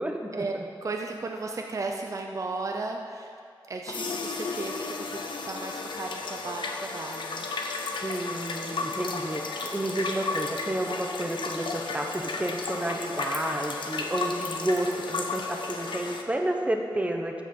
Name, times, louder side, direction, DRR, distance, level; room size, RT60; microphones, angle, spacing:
voice 1, 0.0-0.6 8.0-17.4, right 1 dB, 15° right, 3 dB, 0.9 m, -31 dB
voice 2, 0.8-3.4 3.7-7.5, right 3 dB, 40° right, 2 dB, 0.6 m, -35 dB
sound 1, 3.9-16.2, left 4 dB, 75° left, 0.8 m, -33 dB
14.0 x 5.1 x 5.4 m, 2.3 s
wide cardioid pair, 125°, 8 cm